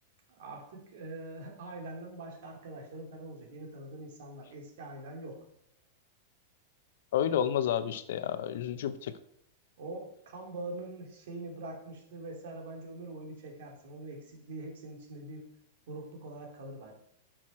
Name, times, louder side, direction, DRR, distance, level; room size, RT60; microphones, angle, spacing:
voice 1, 0.3-5.4 9.8-15.4 15.9-16.9, right 2 dB, 65° right, 0 dB, 2.8 m, -43 dB
voice 2, 7.1-9.1, left 9 dB, 70° left, 13 dB, 0.6 m, -30 dB
8.9 x 6.2 x 4.3 m, 0.72 s
supercardioid pair, 160°, 0 cm